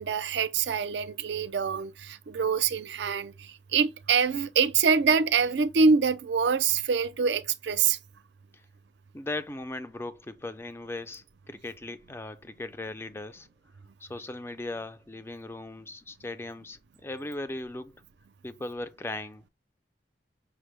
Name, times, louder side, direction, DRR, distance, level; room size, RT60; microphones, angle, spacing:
voice 1, 0.0-8.0, right 5 dB, 75° right, 0.4 m, -25 dB
voice 2, 9.1-13.5 14.0-18.0 18.4-19.4, left 2 dB, 15° left, 0.3 m, -38 dB
5.7 x 2.0 x 3.1 m
head